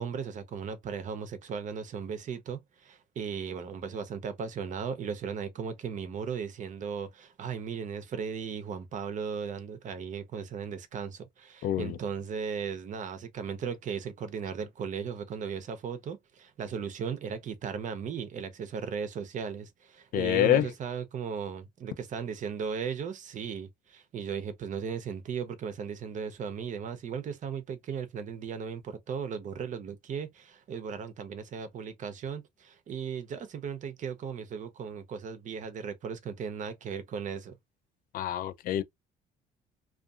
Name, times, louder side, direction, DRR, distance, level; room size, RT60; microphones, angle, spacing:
voice 1, 0.0-37.5, right 6 dB, 45° right, 0.7 m, -36 dB
voice 2, 11.6-12.0 20.1-20.7 38.1-38.8, left 12 dB, 55° left, 0.4 m, -26 dB
2.6 x 2.4 x 2.3 m
cardioid pair, 110°, 17 cm